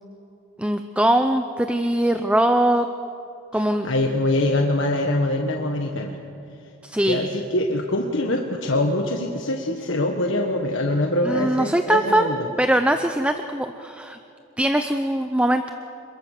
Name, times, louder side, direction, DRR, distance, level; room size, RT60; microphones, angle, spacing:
voice 1, 0.6-2.9 3.5-3.9 6.8-7.3 11.3-12.3 12.6-14.2 14.6-15.7, right 1 dB, 5° right, 7 dB, 0.6 m, -21 dB
voice 2, 3.5-6.2 7.0-12.5, left 1 dB, 65° left, 2 dB, 1.5 m, -24 dB
28.0 x 22.0 x 6.6 m, 2.7 s
head